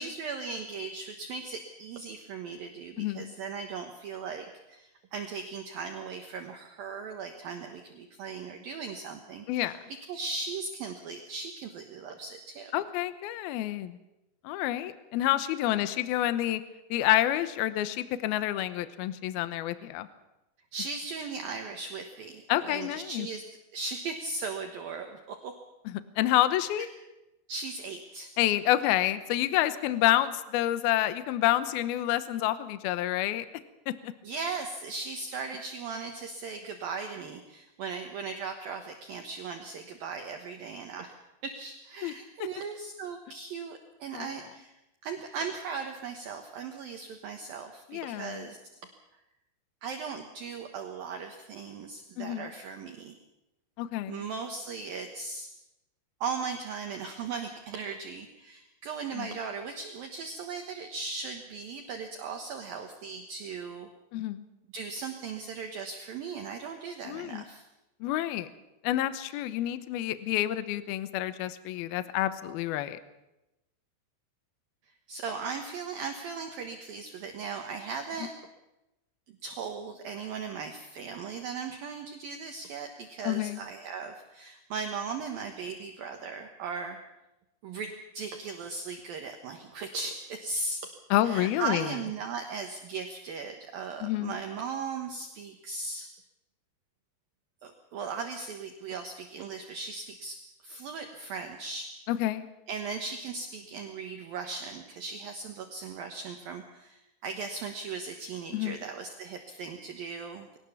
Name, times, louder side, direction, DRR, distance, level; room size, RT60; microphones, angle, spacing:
voice 1, 0.0-12.7 20.7-23.4 23.7-25.6 27.5-28.3 34.2-41.1 41.4-44.7 45.0-48.6 49.8-53.1 54.1-55.5 56.2-63.9 64.7-67.7 75.1-78.4 79.4-87.0 87.6-90.9 91.2-96.1 97.6-102.0 102.7-110.6, right 5 dB, 65° right, 4 dB, 2.4 m, -38 dB
voice 2, 3.0-3.3 9.5-9.8 12.7-14.0 14.4-16.6 16.9-20.1 22.5-23.3 25.9-26.9 28.4-33.5 33.9-34.1 42.0-42.1 42.4-42.5 44.1-44.4 47.9-48.5 52.2-52.5 53.8-54.2 59.1-59.3 64.1-64.4 67.0-67.4 68.0-68.5 68.8-73.0 83.2-83.6 91.1-91.9 94.0-94.4 102.1-102.5 108.5-108.8, left 14 dB, 80° left, 12 dB, 2.2 m, -28 dB
22.0 x 18.5 x 7.2 m, 0.95 s
omnidirectional pair, 5.7 m